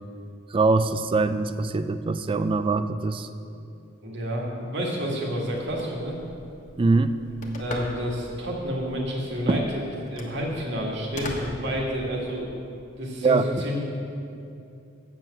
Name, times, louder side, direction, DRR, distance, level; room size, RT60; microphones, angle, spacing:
voice 1, 0.5-3.3 6.8-7.2 9.5-9.7 13.2-13.4, right 3 dB, 25° right, 12 dB, 0.3 m, -23 dB
voice 2, 4.0-6.2 7.6-9.8 10.1-12.5 13.0-13.8, equal, 65° right, -1 dB, 1.9 m, -29 dB
Telephone, 5.4-12.4, left 1 dB, 40° left, 1.2 m, -40 dB
7.5 x 7.3 x 7.7 m, 2.6 s
head